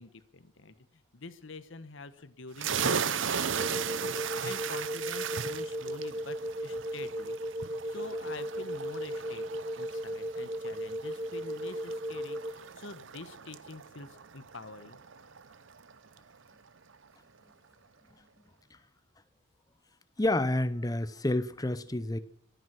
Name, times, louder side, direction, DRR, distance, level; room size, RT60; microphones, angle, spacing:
voice 1, 0.0-7.4 7.9-15.0, left 3 dB, 65° left, 1.1 m, -47 dB
sound 1, 2.6-15.9, right 7 dB, 65° right, 0.8 m, -37 dB
sound 2, 3.6-12.5, equal, 20° right, 0.7 m, -36 dB
voice 2, 20.2-22.2, left 1 dB, 15° left, 0.7 m, -29 dB
24.0 x 9.4 x 6.1 m
head